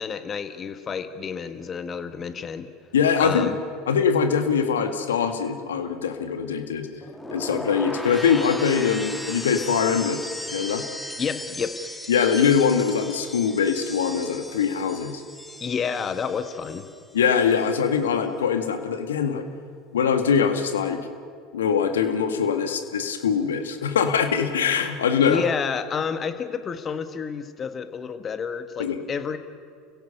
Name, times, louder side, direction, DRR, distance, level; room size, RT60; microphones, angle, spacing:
voice 1, 0.0-2.7 3.2-3.6 11.2-11.8 15.6-16.9 25.2-29.4, left 6 dB, 35° left, 9 dB, 1.7 m, -29 dB
voice 2, 2.9-3.5 3.9-6.9 7.3-10.2 10.5-10.8 12.1-15.2 17.1-19.4 19.9-21.0 21.5-25.4 28.8-29.0, left 6 dB, 80° left, 7 dB, 1.6 m, -22 dB
sound 1, 7.0-17.1 17.4-17.8, left 1 dB, 10° left, 2.2 m, -37 dB
29.5 x 16.5 x 6.8 m, 2.2 s
hypercardioid pair, 75°, 0 cm